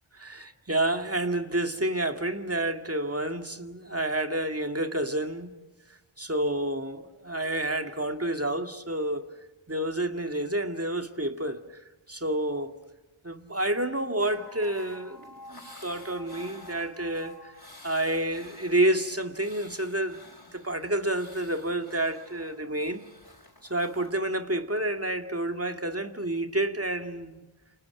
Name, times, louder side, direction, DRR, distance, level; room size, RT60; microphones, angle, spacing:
voice 1, 0.1-5.5 6.2-9.3 9.7-11.6 12.1-12.8 13.2-17.5 17.8-23.1 23.7-27.4, right 1 dB, 30° right, 2.1 m, -29 dB
sound 1, 14.2-24.1, left 1 dB, 45° left, 5.7 m, -50 dB
29.0 x 27.5 x 5.8 m
wide cardioid pair, 45°, 50 cm